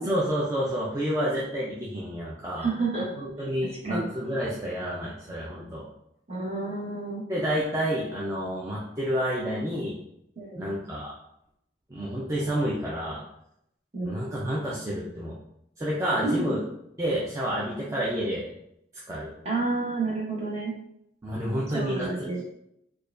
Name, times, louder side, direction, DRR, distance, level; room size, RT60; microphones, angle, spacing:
voice 1, 0.0-2.7 3.2-5.8 7.3-9.9 10.6-11.1 11.9-13.2 14.0-15.3 15.8-16.6 17.0-18.5 19.1-19.3 21.2-22.3, equal, 15° right, -6 dB, 0.5 m, -29 dB
voice 2, 2.6-3.1 3.4-3.5 3.8-4.1 6.3-7.2 10.4-10.7 13.9-14.2 16.2-16.3 19.4-20.7 21.7-22.4, right 3 dB, 35° right, -5 dB, 1.2 m, -30 dB
4.7 x 2.3 x 2.5 m, 0.78 s
head